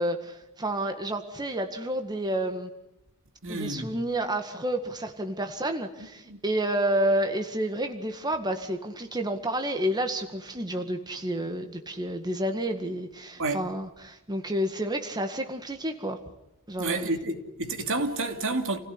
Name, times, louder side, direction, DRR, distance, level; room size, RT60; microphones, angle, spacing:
voice 1, 0.0-2.7 3.5-16.2 16.7-17.1, right 1 dB, 20° right, 1.9 m, -30 dB
voice 2, 3.4-3.9 6.3-6.4 13.4-13.6 16.8-18.8, right 2 dB, 65° right, 2.8 m, -29 dB
29.5 x 16.5 x 9.8 m
head